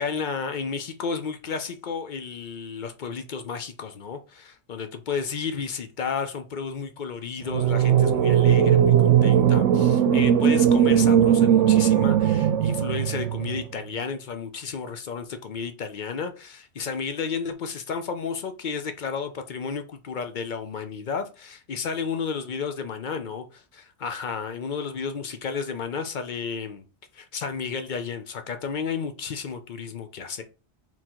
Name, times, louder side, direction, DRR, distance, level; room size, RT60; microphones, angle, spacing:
voice 1, 0.0-26.8 27.1-30.4, left 5 dB, 50° left, 0.6 m, -32 dB
sound 1, 7.5-13.6, right 9 dB, 85° right, 0.9 m, -19 dB
3.8 x 3.0 x 4.4 m
omnidirectional pair, 1.2 m